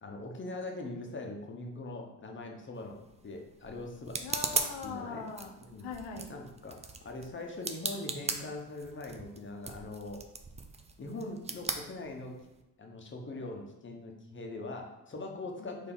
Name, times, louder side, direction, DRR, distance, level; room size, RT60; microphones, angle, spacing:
voice 1, 0.0-3.0 3.2-4.2 4.8-5.2 5.7-5.9 6.3-10.2 11.0-12.3 12.8-15.9, left 2 dB, 25° left, 2 dB, 1.0 m, -42 dB
sound 1, 2.8-12.6, right 4 dB, 15° right, 0.4 m, -39 dB
voice 2, 4.2-5.5 5.8-6.3 15.6-15.9, left 5 dB, 65° left, 3 dB, 0.9 m, -41 dB
4.2 x 2.8 x 3.9 m, 0.99 s
hypercardioid pair, 55°, 43 cm